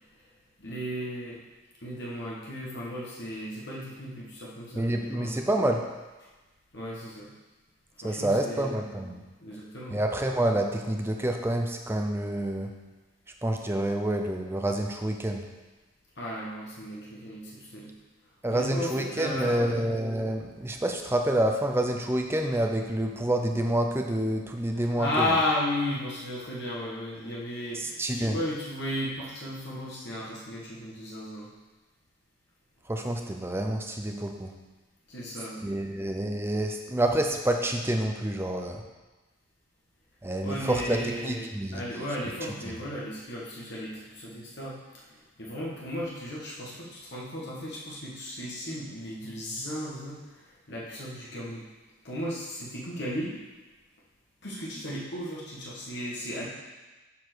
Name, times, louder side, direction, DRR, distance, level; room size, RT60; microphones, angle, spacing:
voice 1, 0.6-1.4 1.8-5.5 6.7-7.3 8.0-8.7 9.4-10.0 16.2-17.9 18.5-19.8 24.7-31.5 35.1-35.6 40.4-51.6 52.0-53.4 54.4-56.5, left 1 dB, 50° left, -5 dB, 1.5 m, -35 dB
voice 2, 4.7-5.9 8.0-9.2 9.9-12.8 13.4-15.5 18.4-25.3 27.7-28.4 32.9-34.5 35.6-38.8 40.2-41.8, right 1 dB, 10° right, 3 dB, 0.5 m, -28 dB
7.4 x 4.5 x 6.1 m, 1.2 s
head